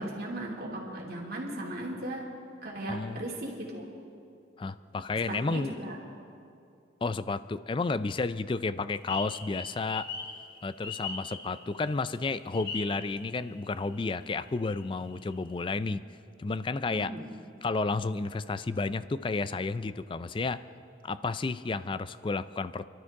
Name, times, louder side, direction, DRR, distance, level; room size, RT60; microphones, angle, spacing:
voice 1, 0.0-2.2 2.6-3.9 5.3-6.0 16.9-17.2, right 1 dB, 55° right, -2 dB, 2.7 m, -37 dB
voice 2, 2.9-3.2 4.6-5.8 7.0-10.1 10.6-16.0 16.4-17.1 17.6-20.6 21.0-22.8, left 3 dB, 25° left, 14 dB, 0.3 m, -31 dB
sound 1, 9.1-11.9 12.5-13.6 13.9-14.0 14.4-15.5, left 5 dB, 60° left, 2.0 m, -39 dB
28.5 x 12.5 x 3.6 m, 2.5 s
head